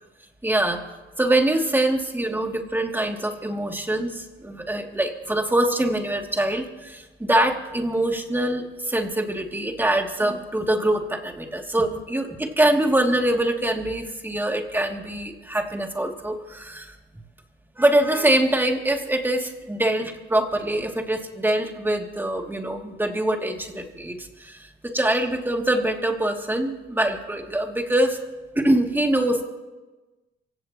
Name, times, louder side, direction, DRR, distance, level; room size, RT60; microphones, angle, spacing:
voice 1, 0.4-0.8 1.2-16.9 17.8-28.2 28.5-29.4, right 1 dB, 10° right, 1 dB, 2.7 m, -24 dB
26.5 x 16.5 x 3.1 m, 1.1 s
cardioid pair, 90°, 20 cm